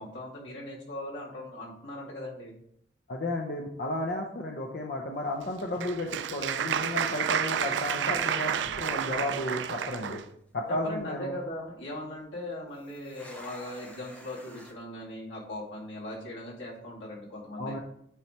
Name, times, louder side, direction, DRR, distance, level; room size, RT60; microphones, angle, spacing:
voice 1, 0.0-2.5 10.7-17.8, left 1 dB, 85° left, -4 dB, 2.2 m, -39 dB
voice 2, 3.1-10.2 10.5-11.3 17.6-17.8, left 1 dB, 55° left, 1 dB, 0.7 m, -33 dB
Applause, 5.4-10.2, right 8 dB, 80° right, 0.4 m, -30 dB
sound 1, 8.0-9.6 9.9-10.0 10.6-11.0 12.7-14.7, equal, 10° left, 0.9 m, -48 dB
8.7 x 3.2 x 4.3 m, 0.71 s
head